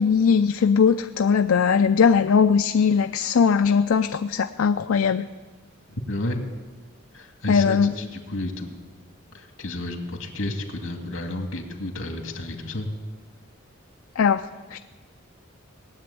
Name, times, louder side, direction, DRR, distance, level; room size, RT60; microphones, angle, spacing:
voice 1, 0.0-5.3 7.5-7.9 14.2-14.4 14.7-14.8, left 6 dB, 85° left, 9 dB, 0.4 m, -20 dB
voice 2, 5.9-6.5 7.1-9.0 9.3-12.9, left 1 dB, 70° left, 4 dB, 2.2 m, -31 dB
18.5 x 7.8 x 9.8 m, 1.4 s
head